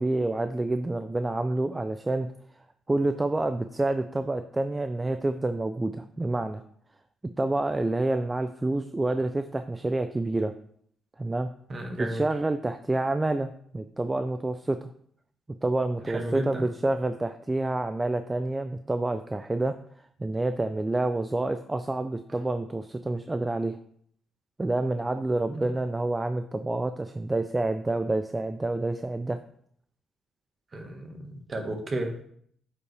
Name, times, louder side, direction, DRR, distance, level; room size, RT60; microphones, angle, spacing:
voice 1, 0.0-2.3 2.9-6.6 7.4-10.5 11.2-11.5 12.0-14.9 15.6-19.7 20.2-23.8 24.6-29.4, right 2 dB, 15° right, 9 dB, 0.4 m, -28 dB
voice 2, 11.7-12.2 16.1-16.6 30.7-32.3, right 1 dB, 35° right, 3 dB, 1.5 m, -33 dB
8.3 x 5.3 x 3.4 m, 0.64 s
cardioid pair, 90°, 0 cm